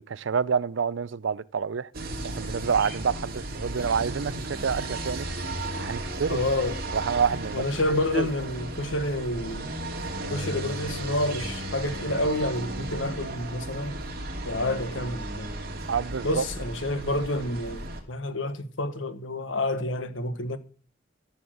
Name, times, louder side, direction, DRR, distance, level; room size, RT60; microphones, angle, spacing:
voice 1, 0.0-1.9 2.2-5.3 5.7-6.4 6.9-7.6 8.1-8.3 15.9-16.4, right 6 dB, 75° right, 0.5 m, -28 dB
sound 1, 1.9-18.0, right 1 dB, 55° right, 2.7 m, -35 dB
voice 2, 6.3-6.8 7.5-9.7 10.3-14.0 14.4-15.5 16.2-20.6, left 1 dB, 80° left, 1.4 m, -29 dB
14.5 x 7.1 x 6.3 m
head